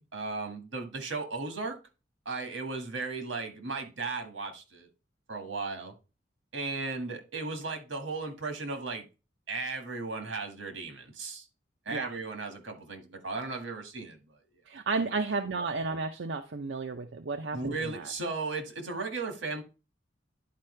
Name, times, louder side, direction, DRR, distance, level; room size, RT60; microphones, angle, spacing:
voice 1, 0.0-1.8 2.3-4.9 5.3-5.9 6.5-9.1 9.5-11.5 11.9-14.2 15.0-15.1 17.5-19.6, right 3 dB, 85° right, 5 dB, 1.8 m, -36 dB
voice 2, 14.7-18.1, right 3 dB, 70° right, 6 dB, 0.6 m, -33 dB
10.5 x 4.6 x 3.2 m, 0.30 s
head